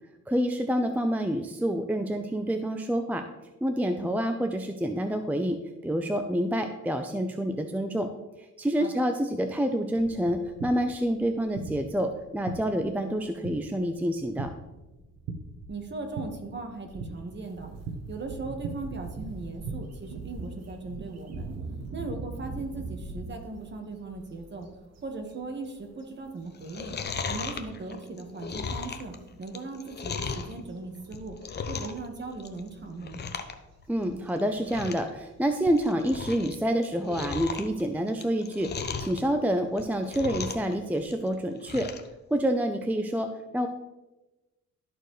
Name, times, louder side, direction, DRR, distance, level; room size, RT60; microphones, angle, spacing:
voice 1, 0.3-3.3 3.6-8.1 8.4-14.5 33.9-41.9 42.3-43.7, equal, 5° right, 6 dB, 0.5 m, -28 dB
sound 1, 10.0-19.8, right 4 dB, 85° right, 0.9 m, -42 dB
voice 2, 15.7-17.7 18.1-21.5 21.9-24.7 25.0-27.0 27.3-31.4 31.7-33.2, right 3 dB, 35° right, 4 dB, 1.4 m, -38 dB
sound 2, 16.9-28.0 28.2-28.4 28.7-36.5, right 3 dB, 55° right, 1.0 m, -43 dB
Chewing mastication, 26.5-30.5 31.0-32.1 32.3-32.7 33.0-33.5 33.8-33.9 34.4-34.5 34.7-35.1 35.5-36.5 36.8-39.2 39.7-40.7 41.0-42.1 42.5-42.6, left 5 dB, 35° left, 0.8 m, -36 dB
12.5 x 4.5 x 3.2 m, 1.1 s
cardioid pair, 90°, 30 cm